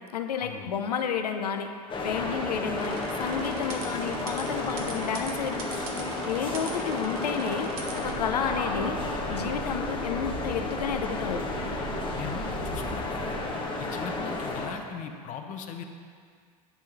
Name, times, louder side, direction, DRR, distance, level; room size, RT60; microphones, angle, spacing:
voice 1, 0.1-1.7 2.0-5.6 6.3-9.0 9.3-11.4, left 7 dB, 75° left, 6 dB, 0.7 m, -31 dB
sound 1, 1.9-14.7, left 2 dB, 25° left, 1.2 m, -32 dB
sound 2, 2.8-8.2, right 4 dB, 65° right, 1.1 m, -41 dB
sound 3, 8.0-13.4, right 3 dB, 35° right, 1.6 m, -39 dB
voice 2, 12.1-13.2 13.8-15.8, left 7 dB, 40° left, 6 dB, 0.7 m, -39 dB
10.5 x 3.8 x 5.8 m, 2.1 s
hypercardioid pair, 80°, 20 cm